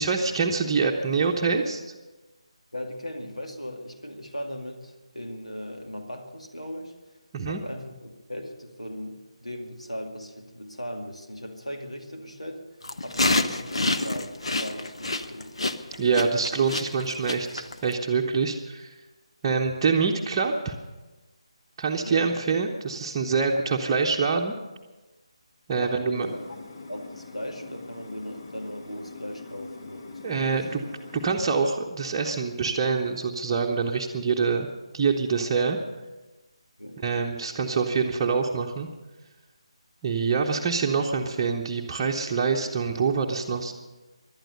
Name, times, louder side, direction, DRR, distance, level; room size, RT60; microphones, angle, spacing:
voice 1, 0.0-1.8 7.3-7.6 16.0-19.0 19.4-20.8 21.8-24.5 25.7-26.3 30.2-30.8 31.1-34.7 34.9-35.8 37.0-38.9 40.0-43.7, right 5 dB, 20° right, -2 dB, 1.0 m, -25 dB
voice 2, 2.7-6.9 7.5-12.6 13.0-15.5 22.0-22.4 25.7-26.6 26.9-30.8 36.8-37.0, equal, 85° left, 2 dB, 2.2 m, -38 dB
sound 1, 12.8-17.9, left 2 dB, 60° left, 1.0 m, -27 dB
sound 2, 26.2-31.4, left 3 dB, 40° left, 1.3 m, -42 dB
18.0 x 12.0 x 6.7 m, 1.2 s
figure-of-eight pair, 150°, 3 cm